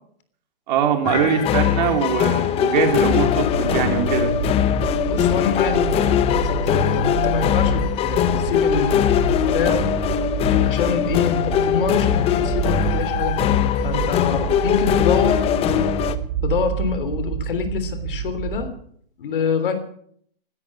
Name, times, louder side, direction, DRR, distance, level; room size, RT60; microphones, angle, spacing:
voice 1, 0.7-4.3, right 7 dB, 50° right, 4 dB, 3.6 m, -22 dB
sound 1, 1.0-16.2, left 10 dB, 20° left, 0.9 m, -21 dB
sound 2, 2.5-18.7, right 9 dB, 30° right, 3.3 m, -28 dB
voice 2, 5.1-9.8 10.6-15.4 16.4-18.7 19.2-19.8, left 6 dB, 65° left, 10 dB, 3.4 m, -25 dB
17.5 x 13.0 x 6.3 m, 0.63 s
hypercardioid pair, 135°, 29 cm